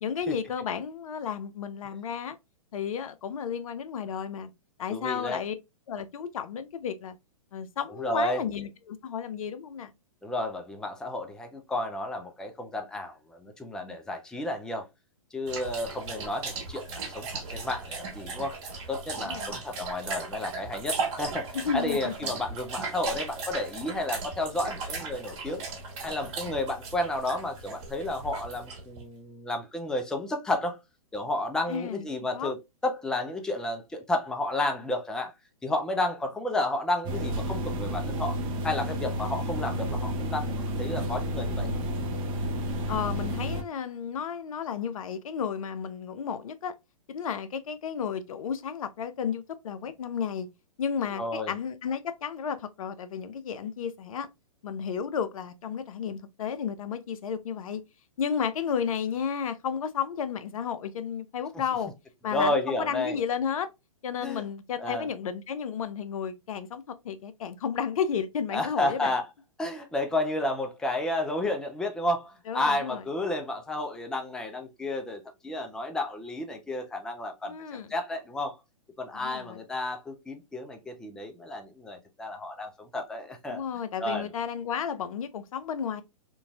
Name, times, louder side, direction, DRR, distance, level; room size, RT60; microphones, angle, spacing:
voice 1, 0.0-2.4 2.7-4.5 4.8-5.6 5.9-7.2 7.5-9.9 19.2-19.6 21.5-22.3 31.7-32.1 32.3-32.5 41.3-41.8 42.9-46.7 47.1-50.5 50.8-54.3 54.6-57.8 58.2-61.9 62.2-63.7 64.0-69.1 72.5-73.0 77.5-77.9 79.1-79.6 83.5-86.0, left 7 dB, 70° left, 0.5 m, -32 dB
voice 2, 4.9-5.4 8.0-8.4 10.2-14.9 15.3-18.5 18.9-21.5 21.7-25.7 26.0-30.8 31.1-32.6 32.8-35.3 35.6-38.4 38.6-41.7 51.1-51.5 62.3-63.2 64.2-64.4 64.8-65.1 68.5-69.2 69.6-78.6 79.0-83.6 84.0-84.3, left 1 dB, 5° left, 0.3 m, -31 dB
sound 1, 15.5-29.0, right 4 dB, 50° right, 1.4 m, -37 dB
sound 2, 37.0-43.6, equal, 25° right, 0.7 m, -31 dB
3.0 x 2.5 x 2.2 m
hypercardioid pair, 125°, 18 cm